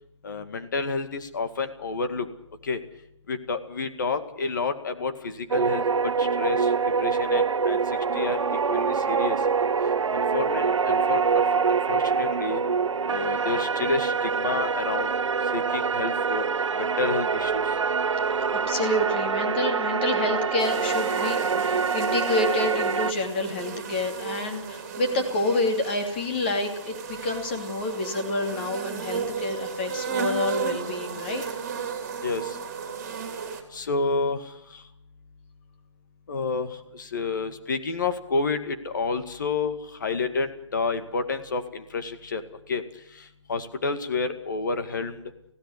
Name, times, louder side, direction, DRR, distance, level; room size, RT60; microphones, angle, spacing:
voice 1, 0.2-2.3 2.6-2.8 3.3-6.7 7.0-9.4 10.1-11.5 11.9-12.6 13.1-15.2 15.5-16.4 16.8-17.8 32.2-32.6 33.7-34.8 36.3-42.4 42.7-42.8 43.1-45.2, left 4 dB, 40° left, 9 dB, 2.2 m, -30 dB
sound 1, 5.5-23.1, right 5 dB, 80° right, 1.0 m, -25 dB
voice 2, 18.5-31.4, left 2 dB, 20° left, 4 dB, 2.7 m, -28 dB
sound 2, 20.6-33.6, right 6 dB, 30° right, 3.2 m, -34 dB
18.0 x 16.5 x 9.9 m, 0.77 s
hypercardioid pair, 175°, 15 cm